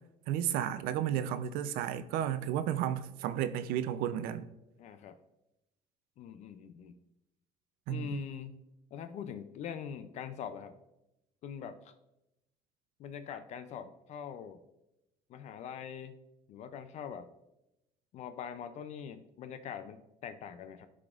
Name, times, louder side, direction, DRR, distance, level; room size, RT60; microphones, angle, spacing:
voice 1, 0.3-4.5 7.9-8.3, right 10 dB, 80° right, 0.5 m, -33 dB
voice 2, 4.8-5.2 6.2-7.0 7.9-8.6 8.9-10.8 11.4-11.9 13.0-14.6 15.3-16.1 16.5-17.3 18.1-20.9, left 8 dB, 50° left, 0.4 m, -43 dB
12.0 x 4.9 x 2.4 m
cardioid pair, 140°, 15 cm